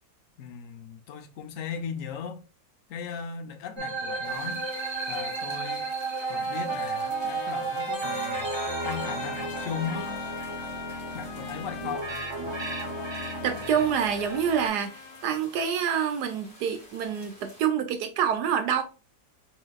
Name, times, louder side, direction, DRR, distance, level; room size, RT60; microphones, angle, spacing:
voice 1, 0.4-2.4 2.9-4.6 5.1-5.9 6.3-10.3 11.1-12.1, left 7 dB, 60° left, 0.9 m, -37 dB
sound 1, 3.8-14.7, right 3 dB, 25° right, 0.5 m, -33 dB
sound 2, 4.2-17.7, left 1 dB, 30° left, 1.7 m, -52 dB
Trumpet, 6.2-15.3, left 6 dB, 80° left, 1.3 m, -42 dB
voice 2, 13.4-18.8, right 8 dB, 80° right, 1.1 m, -27 dB
4.1 x 3.7 x 2.2 m
omnidirectional pair, 1.8 m